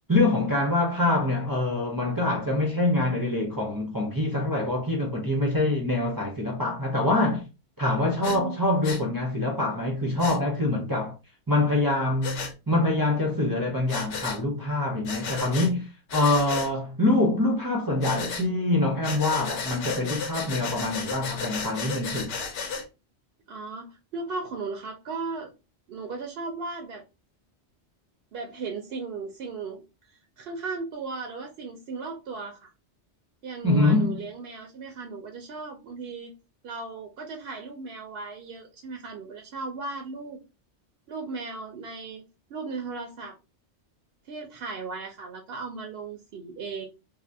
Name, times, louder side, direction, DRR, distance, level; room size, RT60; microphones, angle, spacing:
voice 1, 0.1-7.4 7.8-11.1 11.5-15.9 16.1-22.3 33.6-34.2, left 2 dB, 25° right, 0.5 m, -25 dB
Breathing, 8.2-8.4 8.8-9.0 10.2-10.4 12.2-12.5 13.9-14.4 15.1-15.7 16.1-16.7 18.0-18.5 19.0-22.8, left 5 dB, 90° left, 1.0 m, -33 dB
voice 2, 8.3-8.6 23.5-25.5 25.9-27.0 28.3-29.8 30.4-32.7 33.4-36.3 36.6-40.4 41.1-42.2 42.5-43.4 44.2-46.9, right 4 dB, 65° right, 0.7 m, -36 dB
2.6 x 2.1 x 3.3 m
omnidirectional pair, 1.2 m